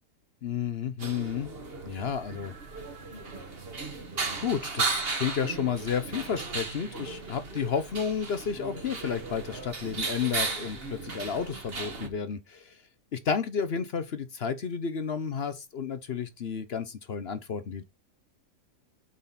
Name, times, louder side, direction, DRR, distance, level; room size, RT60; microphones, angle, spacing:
voice 1, 0.4-1.5 1.9-2.5 4.4-12.8 13.1-17.8, left 7 dB, 50° left, 0.7 m, -31 dB
sound 1, 1.0-12.1, right 4 dB, 35° right, 1.5 m, -35 dB
7.5 x 4.1 x 5.7 m
omnidirectional pair, 1.8 m